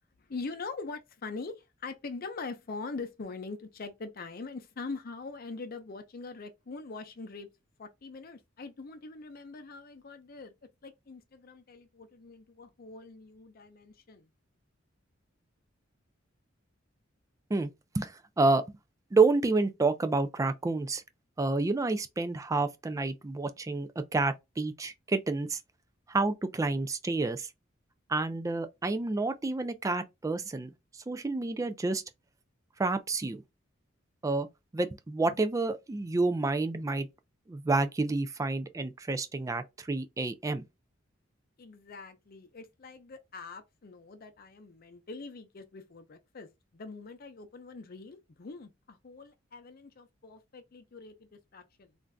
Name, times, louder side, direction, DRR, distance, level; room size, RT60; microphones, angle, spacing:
voice 1, 0.2-7.5 7.8-10.5 10.8-14.3 41.6-46.5 46.7-51.9, left 4 dB, 50° left, 0.5 m, -43 dB
voice 2, 17.9-18.6 19.1-21.0 21.4-25.6 26.1-27.5 28.1-30.7 31.1-32.0 32.8-33.4 34.2-34.5 34.7-37.1 37.5-40.6, right 3 dB, 15° right, 0.3 m, -29 dB
3.3 x 2.5 x 2.3 m
head